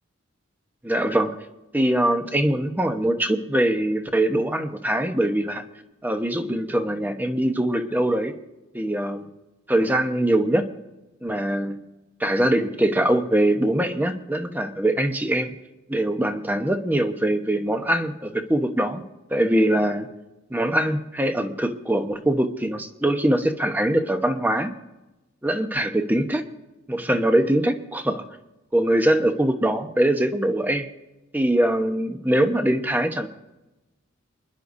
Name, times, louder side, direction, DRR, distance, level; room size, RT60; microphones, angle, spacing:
voice 1, 0.8-1.4 1.7-5.6 6.0-8.3 8.7-9.3 9.7-10.7 11.2-11.8 12.2-15.6 15.9-19.0 19.3-20.1 20.5-24.7 25.4-26.4 26.9-28.2 28.7-30.9 31.3-33.3, right 1 dB, 10° right, 6 dB, 0.9 m, -22 dB
29.0 x 11.0 x 2.7 m, 1.0 s
head